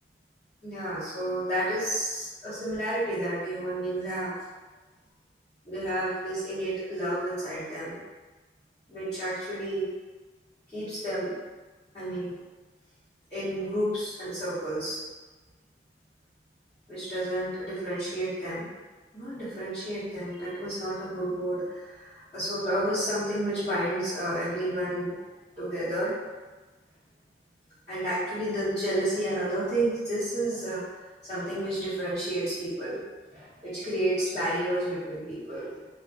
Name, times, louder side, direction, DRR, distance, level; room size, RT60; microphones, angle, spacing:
voice 1, 0.6-4.3 5.6-8.0 8.9-9.9 10.7-11.3 11.9-12.3 13.3-15.0 16.9-18.6 19.1-25.1 25.6-26.1 27.9-30.8 31.3-33.0 33.3-35.7, right 1 dB, 20° left, -18 dB, 1.2 m, -31 dB
2.4 x 2.1 x 2.9 m, 1.3 s
head